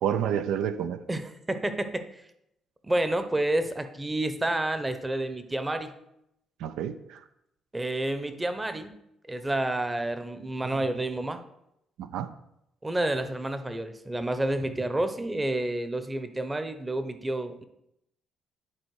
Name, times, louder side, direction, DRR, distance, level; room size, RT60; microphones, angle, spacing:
voice 1, 0.0-1.0 6.6-7.2 10.6-10.8 12.0-12.3, right 9 dB, 90° right, 0.4 m, -29 dB
voice 2, 1.1-2.0 2.8-5.9 7.7-8.9 9.3-11.4 12.8-17.6, right 1 dB, 15° right, 0.8 m, -29 dB
11.0 x 4.3 x 4.8 m
cardioid pair, 90°, 0 cm